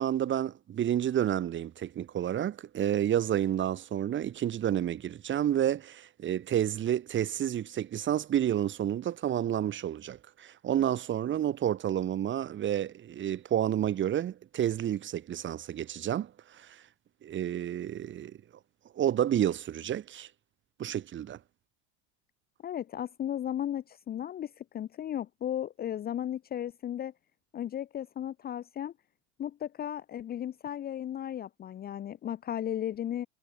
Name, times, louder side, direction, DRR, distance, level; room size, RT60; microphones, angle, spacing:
voice 1, 0.0-16.8 17.2-18.4 19.0-20.3 20.8-21.4, right 10 dB, 35° right, 3.7 m, -30 dB
voice 2, 22.6-27.1 27.5-28.9 29.4-33.3, left 10 dB, 25° left, 0.9 m, -35 dB
supercardioid pair, 115°, 35 cm